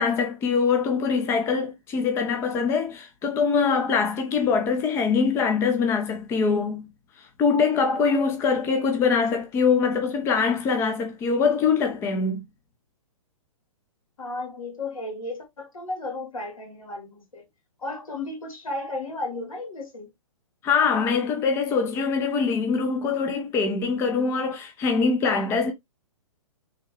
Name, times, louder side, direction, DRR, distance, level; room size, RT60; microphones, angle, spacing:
voice 1, 0.0-6.9 7.2-12.4 20.6-25.7, left 5 dB, 15° left, 0.4 m, -23 dB
voice 2, 14.2-17.4 17.8-20.1, left 2 dB, 75° left, 2.0 m, -34 dB
3.4 x 2.1 x 3.2 m
hypercardioid pair, 130°, 18 cm